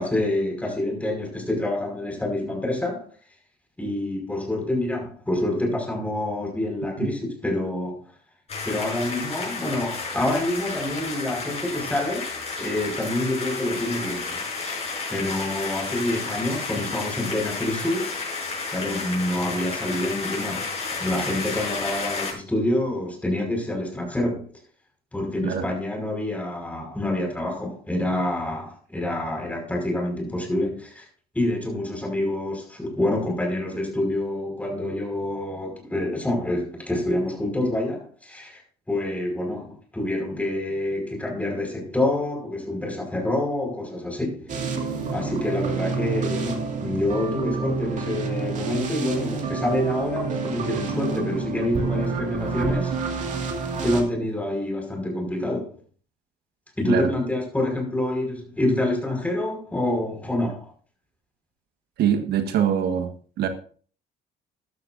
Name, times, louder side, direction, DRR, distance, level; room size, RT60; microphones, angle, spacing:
voice 1, 0.0-3.1 3.8-8.0 8.7-12.3 12.6-20.7 21.0-24.5 25.1-31.1 31.3-38.6 38.9-44.5 45.1-52.9 53.8-55.7 56.8-60.7, left 1 dB, 10° left, 5.3 m, -27 dB
sound 1, 8.5-22.3, left 4 dB, 40° left, 6.7 m, -32 dB
sound 2, 44.5-54.0, right 4 dB, 45° right, 2.5 m, -28 dB
voice 2, 62.0-63.1 63.4-63.5, right 8 dB, 75° right, 1.6 m, -23 dB
14.0 x 12.0 x 2.6 m
cardioid pair, 110°, 17 cm